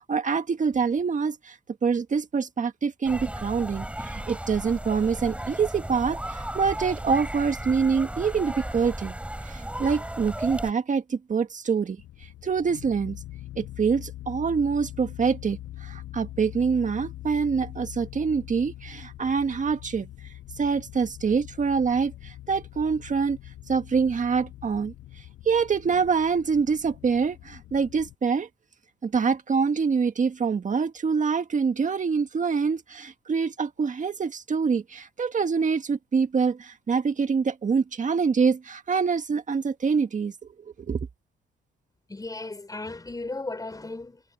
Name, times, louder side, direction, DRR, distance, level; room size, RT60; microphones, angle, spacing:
voice 1, 0.0-9.1 9.4-13.2 13.6-20.1 20.6-23.4 23.7-28.5 29.0-40.5 40.9-41.1, right 5 dB, 40° right, 1.7 m, -25 dB
sound 1, 3.0-10.7, right 1 dB, 5° right, 4.8 m, -35 dB
sound 2, 12.0-28.2, left 14 dB, 85° left, 7.2 m, -43 dB
voice 2, 42.1-44.2, left 2 dB, 20° left, 5.3 m, -35 dB
cardioid pair, 90°, 20 cm